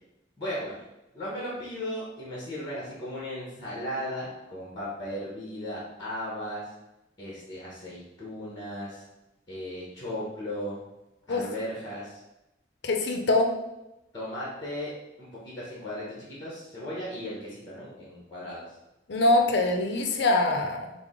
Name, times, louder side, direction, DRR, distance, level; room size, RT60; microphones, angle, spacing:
voice 1, 0.4-0.7 1.1-6.7 7.2-9.0 9.5-10.8 11.3-12.2 14.1-14.9 15.2-18.7, equal, 20° left, -6 dB, 0.9 m, -36 dB
voice 2, 12.8-13.5 19.1-20.9, left 2 dB, 55° left, 3 dB, 0.5 m, -23 dB
4.6 x 2.0 x 3.6 m, 0.95 s
head